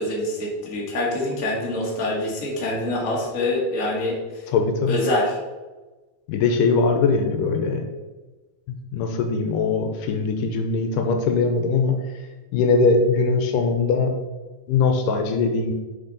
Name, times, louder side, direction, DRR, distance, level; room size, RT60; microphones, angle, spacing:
voice 1, 0.0-4.4 4.9-5.3, left 1 dB, 60° left, -3 dB, 0.8 m, -25 dB
voice 2, 4.5-5.0 6.3-7.9 8.7-14.1 14.7-15.7, left 4 dB, 80° left, 4 dB, 2.1 m, -21 dB
6.3 x 5.0 x 3.9 m, 1.2 s
omnidirectional pair, 4.0 m